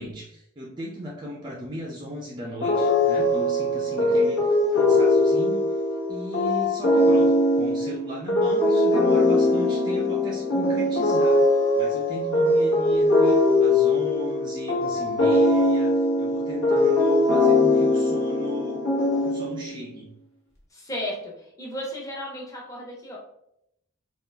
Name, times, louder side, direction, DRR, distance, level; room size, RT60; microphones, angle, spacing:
voice 1, 0.0-5.8 6.1-11.4 11.8-15.9 16.2-18.8 19.1-20.1, equal, 20° right, -2 dB, 0.5 m, -36 dB
sound 1, 2.6-19.8, left 1 dB, 75° left, 1.2 m, -21 dB
voice 2, 20.7-21.3 21.6-23.2, equal, 15° left, -3 dB, 0.9 m, -34 dB
3.8 x 2.4 x 3.3 m, 0.77 s
head